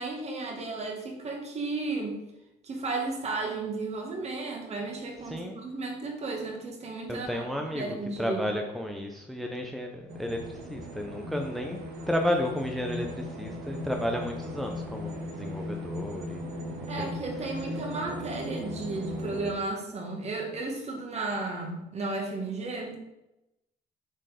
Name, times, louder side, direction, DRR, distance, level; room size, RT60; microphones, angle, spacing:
voice 1, 0.0-2.2 2.6-8.4 16.9-23.0, right 3 dB, 40° right, 2 dB, 1.9 m, -34 dB
voice 2, 7.1-11.8 12.1-16.4 17.0-17.1, left 1 dB, ahead, 3 dB, 0.7 m, -32 dB
sound 1, 10.1-19.5, left 1 dB, 75° right, 1.7 m, -37 dB
7.5 x 4.6 x 5.1 m, 0.92 s
cardioid pair, 110°, 17 cm